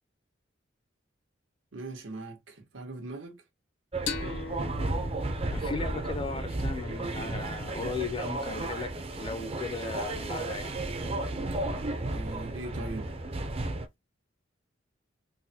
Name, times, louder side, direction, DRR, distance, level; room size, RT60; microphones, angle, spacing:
voice 1, 1.7-3.4 12.1-13.2, right 2 dB, 90° right, 1.2 m, -40 dB
sound 1, 3.9-13.9, right 2 dB, 30° right, 0.4 m, -33 dB
sound 2, 4.1-7.4, left 5 dB, 75° left, 0.9 m, -41 dB
voice 2, 5.5-10.8, left 3 dB, 25° left, 0.4 m, -36 dB
3.9 x 2.1 x 2.7 m
head